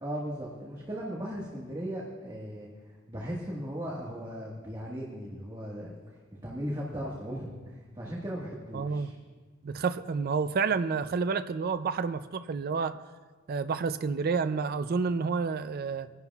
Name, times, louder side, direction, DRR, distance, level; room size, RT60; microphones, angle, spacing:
voice 1, 0.0-2.7 3.1-5.9 6.3-9.1, equal, 20° right, -4 dB, 1.5 m, -37 dB
voice 2, 8.7-9.2 9.6-13.0 13.5-16.1, right 5 dB, 50° right, 11 dB, 0.4 m, -29 dB
23.0 x 11.0 x 2.3 m, 1.4 s
head